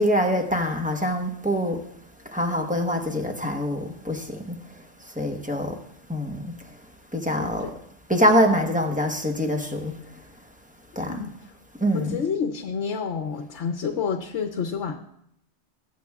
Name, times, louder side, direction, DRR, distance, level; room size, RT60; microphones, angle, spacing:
voice 1, 0.0-1.8 2.3-5.8 6.1-6.5 7.1-7.7 8.1-10.0 11.0-11.2 11.8-12.2, equal, 5° right, 0.9 m, -24 dB
voice 2, 7.4-7.7 11.1-11.3 11.9-15.0, left 6 dB, 70° left, 1.0 m, -29 dB
21.5 x 8.5 x 2.4 m
omnidirectional pair, 1.3 m